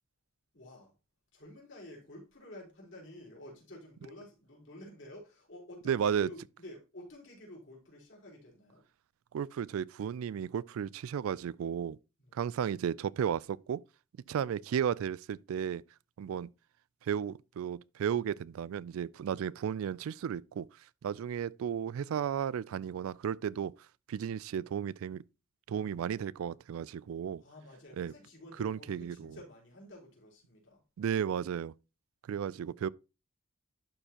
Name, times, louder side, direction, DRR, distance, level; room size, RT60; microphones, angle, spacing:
voice 1, 0.5-0.9 1.3-8.8 12.2-12.7 27.4-30.8, left 1 dB, 60° left, 3.9 m, -51 dB
voice 2, 5.9-6.3 9.3-12.0 12.3-13.8 14.3-15.8 16.2-16.5 17.0-20.7 21.0-23.7 24.1-25.2 25.7-27.4 28.0-28.1 28.6-29.4 31.0-31.7 32.3-32.9, right 8 dB, 80° right, 0.3 m, -34 dB
11.5 x 4.4 x 2.9 m
head